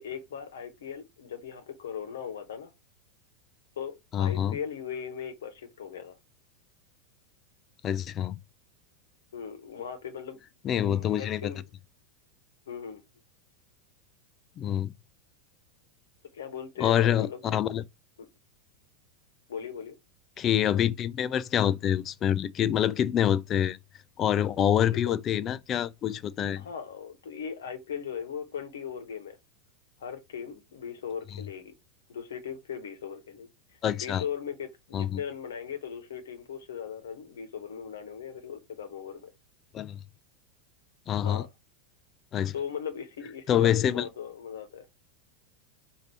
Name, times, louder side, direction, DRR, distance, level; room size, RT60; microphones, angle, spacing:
voice 1, 0.0-2.7 3.8-6.2 9.3-10.4 10.8-11.6 12.7-13.0 16.3-17.6 19.5-19.9 25.0-25.1 26.6-29.4 30.0-31.7 32.1-33.5 34.0-39.3 41.2-41.5 42.5-44.8, left 7 dB, 70° left, 1.1 m, -38 dB
voice 2, 4.1-4.6 7.8-8.4 10.6-11.5 14.6-14.9 16.8-17.8 20.4-23.8 24.2-26.7 33.8-34.2 34.9-35.2 39.7-40.0 41.1-41.4 42.3-42.5 43.5-44.1, left 10 dB, 35° left, 0.4 m, -26 dB
5.1 x 2.8 x 3.0 m
figure-of-eight pair, 90°, 0 cm